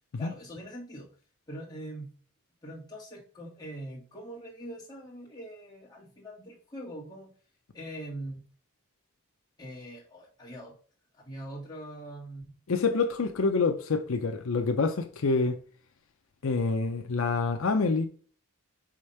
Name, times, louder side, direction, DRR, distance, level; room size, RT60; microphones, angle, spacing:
voice 1, 0.2-1.1 1.5-2.1 2.6-7.3 7.7-8.5 9.6-10.8 11.2-12.5, right 1 dB, 20° left, 1.7 m, -42 dB
voice 2, 12.7-15.6 16.4-18.1, left 4 dB, 70° left, 0.6 m, -27 dB
5.0 x 3.6 x 5.5 m
head